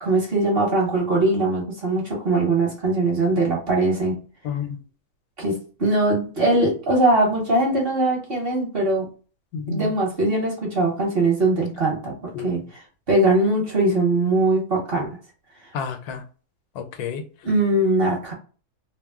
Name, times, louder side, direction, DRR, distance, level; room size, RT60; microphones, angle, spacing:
voice 1, 0.0-4.2 5.4-9.1 9.7-12.1 12.4-12.6 13.1-15.1 17.4-18.3, right 2 dB, 45° right, -1 dB, 0.9 m, -21 dB
voice 2, 4.4-4.8 9.5-9.9 12.3-12.7 15.7-16.2 16.7-17.5, left 5 dB, 90° left, 7 dB, 1.1 m, -31 dB
2.6 x 2.1 x 3.4 m, 0.38 s
omnidirectional pair, 1.6 m